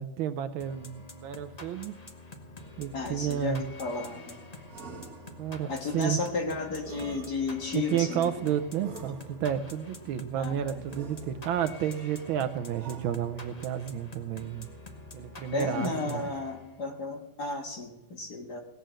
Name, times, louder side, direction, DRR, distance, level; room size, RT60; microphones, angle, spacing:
voice 1, 0.0-2.0 2.8-3.6 5.4-6.2 7.7-14.7 15.1-16.3, right 10 dB, 75° right, 9 dB, 1.4 m, -31 dB
sound 1, 0.6-16.9, left 2 dB, 25° left, 0.8 m, -47 dB
voice 2, 2.9-4.4 5.7-8.5 10.3-10.7 15.5-18.6, left 3 dB, 50° left, 2 dB, 2.0 m, -33 dB
sound 2, 4.7-5.7 6.8-7.9 8.8-9.7 10.9-11.8 12.7-13.7, right 4 dB, 45° right, 1.7 m, -46 dB
18.0 x 6.9 x 7.5 m, 0.94 s
omnidirectional pair, 2.4 m